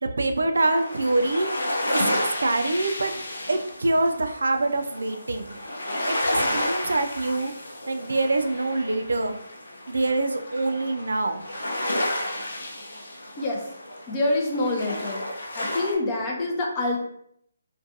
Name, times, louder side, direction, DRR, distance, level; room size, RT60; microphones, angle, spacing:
voice 1, 0.0-2.1 2.4-3.1 3.5-5.5 6.1-7.5 7.9-9.3 9.9-11.4, right 2 dB, 80° right, 6 dB, 0.3 m, -25 dB
sound 1, 0.5-15.9, left 1 dB, 75° left, 0.6 m, -31 dB
voice 2, 14.1-15.3 15.5-17.0, left 2 dB, 25° left, -1 dB, 0.5 m, -26 dB
2.4 x 2.2 x 2.6 m, 0.70 s
figure-of-eight pair, 155°, 0 cm